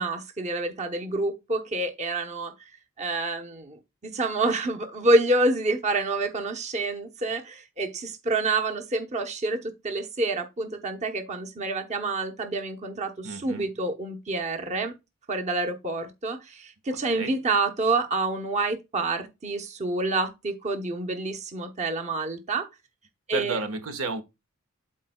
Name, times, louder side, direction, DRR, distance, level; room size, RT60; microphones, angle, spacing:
voice 1, 0.0-2.5 3.0-14.9 15.3-22.7 23.3-23.6, right 2 dB, 35° right, 1.0 m, -28 dB
voice 2, 13.2-13.7 17.1-17.3 23.3-24.2, right 3 dB, 80° right, 1.4 m, -32 dB
12.0 x 4.3 x 2.3 m
head